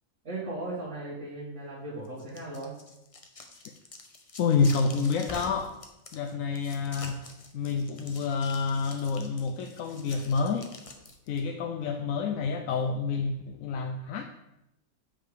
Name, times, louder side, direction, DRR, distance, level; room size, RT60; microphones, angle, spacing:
voice 1, 0.2-2.7, right 2 dB, 65° right, -10 dB, 2.2 m, -37 dB
sound 1, 2.0-11.4, left 3 dB, 30° left, 0.7 m, -46 dB
voice 2, 4.4-5.7 6.1-7.3 7.5-10.7 11.3-14.2, left 5 dB, 80° left, 4 dB, 1.0 m, -28 dB
6.9 x 5.6 x 4.8 m, 0.89 s
omnidirectional pair, 1.4 m